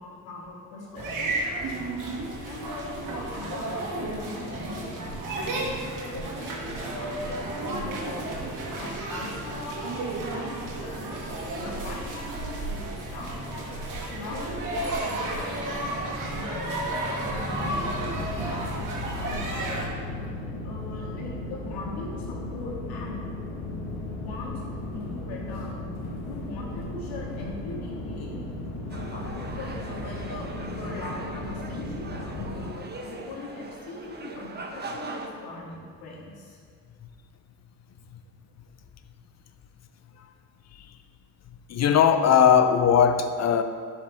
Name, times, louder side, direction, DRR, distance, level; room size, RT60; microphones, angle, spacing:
voice 1, 0.0-1.3 2.3-5.0 5.3-9.8 10.3-11.1 11.6-13.5 14.1-15.6 16.3-18.2 19.2-23.3 24.2-25.8 26.2-28.4 28.8-36.6, left 3 dB, 70° left, -3 dB, 2.2 m, -40 dB
sound 1, 0.9-19.9, right 2 dB, 50° right, 2.0 m, -32 dB
sound 2, 17.5-32.7, left 2 dB, 90° left, 1.7 m, -36 dB
sound 3, 28.9-35.3, right 3 dB, 25° right, 1.1 m, -40 dB
voice 2, 41.7-43.6, left 8 dB, 40° left, 9 dB, 0.8 m, -19 dB
11.0 x 5.6 x 3.6 m, 2.1 s
hypercardioid pair, 65°, 39 cm